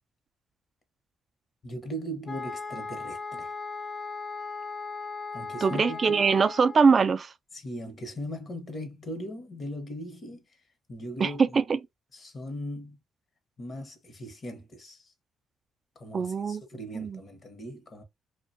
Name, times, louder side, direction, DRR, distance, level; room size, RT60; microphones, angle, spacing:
voice 1, 1.6-3.5 5.3-6.2 7.5-10.6 10.9-11.5 12.1-13.0 13.6-15.1 16.0-18.0, equal, 45° left, 0.8 m, -39 dB
sound 1, 2.3-7.0, left 4 dB, 25° left, 0.5 m, -37 dB
voice 2, 5.6-7.3 11.2-11.3 16.1-16.6 16.9-17.2, right 5 dB, 40° right, 0.3 m, -22 dB
2.5 x 2.2 x 2.5 m
cardioid pair, 90°, 0 cm